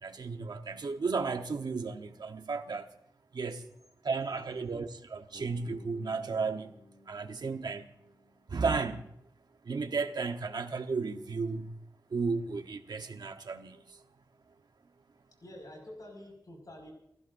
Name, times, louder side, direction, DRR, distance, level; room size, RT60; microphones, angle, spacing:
voice 1, 0.0-2.9 3.3-3.6 4.0-6.7 7.1-7.9 8.5-9.1 9.7-11.7 12.1-13.8, right 4 dB, 85° right, 1.1 m, -34 dB
voice 2, 4.0-4.9 15.4-16.9, left 1 dB, 65° left, 5.5 m, -49 dB
Bass guitar, 5.3-9.3, left 1 dB, 20° left, 2.6 m, -58 dB
29.5 x 15.5 x 2.6 m
wide cardioid pair, 80°, 7 cm